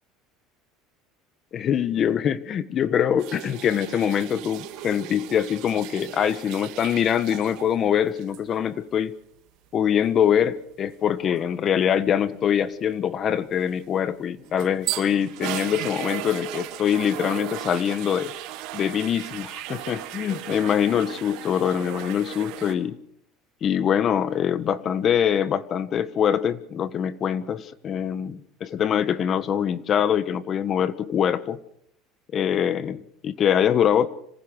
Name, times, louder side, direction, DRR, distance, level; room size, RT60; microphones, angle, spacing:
voice 1, 1.5-9.1 9.7-18.3 18.7-23.0 23.6-31.6 32.3-34.1, left 9 dB, 40° left, 15 dB, 1.3 m, -24 dB
sound 1, 3.2-7.7 8.1-8.4 14.2-22.7, right 13 dB, 65° right, 3.1 m, -36 dB
26.0 x 19.0 x 6.5 m, 0.68 s
supercardioid pair, 125°, 0 cm